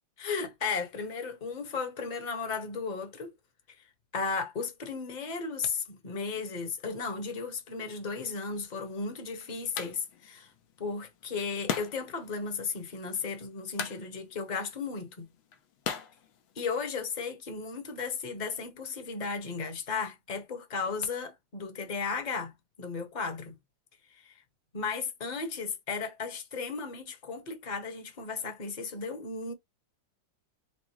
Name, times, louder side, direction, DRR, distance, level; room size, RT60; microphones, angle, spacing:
voice 1, 0.2-3.3 3.8-3.9 4.1-10.5 10.8-15.3 16.6-23.6 24.1-24.4 24.7-29.5, left 5 dB, 30° left, 0.9 m, -35 dB
sound 1, 8.5-17.1, left 8 dB, 80° left, 1.6 m, -41 dB
6.0 x 2.0 x 3.1 m
omnidirectional pair, 2.1 m